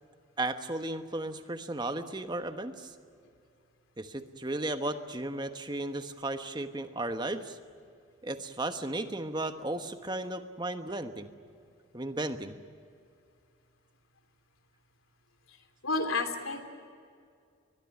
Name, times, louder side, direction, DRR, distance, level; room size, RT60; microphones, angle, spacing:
voice 1, 0.4-2.9 4.0-7.6 8.2-11.3 11.9-12.6, right 2 dB, 20° right, 8 dB, 1.2 m, -35 dB
voice 2, 15.8-16.6, left 3 dB, 85° left, 7 dB, 3.2 m, -30 dB
22.0 x 22.0 x 9.7 m, 2.3 s
head